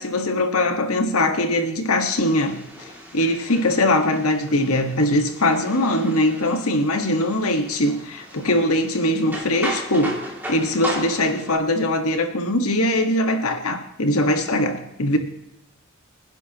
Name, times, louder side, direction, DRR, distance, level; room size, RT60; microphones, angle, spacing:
voice 1, 0.0-10.2 10.5-15.2, left 1 dB, 80° left, 5 dB, 1.7 m, -21 dB
sound 1, 2.1-11.6, equal, 10° right, 2.6 m, -36 dB
26.5 x 10.5 x 3.0 m, 0.88 s
head